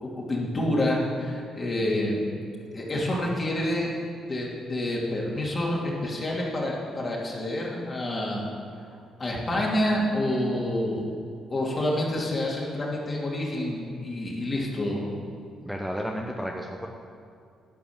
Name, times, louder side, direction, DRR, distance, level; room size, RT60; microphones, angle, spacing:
voice 1, 0.0-2.2 2.7-3.9 4.3-8.5 9.2-11.0 11.5-15.1, left 1 dB, 40° left, -3 dB, 2.8 m, -28 dB
voice 2, 15.6-16.9, equal, ahead, 0 dB, 0.9 m, -32 dB
11.5 x 5.3 x 7.3 m, 2.4 s
supercardioid pair, 60°, 0 cm